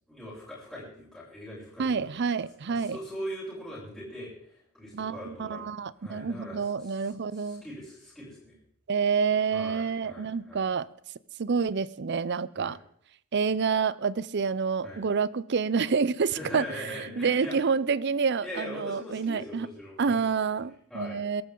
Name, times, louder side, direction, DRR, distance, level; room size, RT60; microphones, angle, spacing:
voice 1, 0.1-2.1 2.7-8.6 9.5-10.6 12.6-12.8 14.8-15.0 16.3-17.6 18.4-20.2 20.9-21.2, equal, ahead, 7.6 m, -41 dB
voice 2, 1.8-3.0 4.9-7.6 8.9-10.9 11.4-12.8 13.3-16.6 17.2-19.7 20.0-21.4, right 5 dB, 50° right, 0.5 m, -28 dB
22.5 x 12.5 x 3.9 m
head